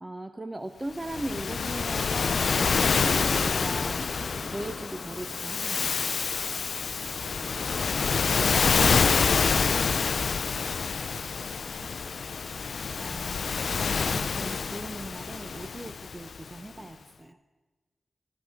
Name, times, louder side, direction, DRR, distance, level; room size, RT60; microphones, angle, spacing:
voice 1, 0.0-6.2 11.0-11.1 13.0-17.4, right 1 dB, 25° right, 9 dB, 0.9 m, -39 dB
Waves surf, 1.0-16.5, left 5 dB, 75° left, 0.4 m, -27 dB
sound 1, 2.6-9.2 9.7-9.8, left 2 dB, 40° left, 1.9 m, -40 dB
voice 2, 7.1-12.7, right 1 dB, 70° right, 0 dB, 6.7 m, -50 dB
14.0 x 13.5 x 7.1 m, 1.3 s
cardioid pair, 50°, 0 cm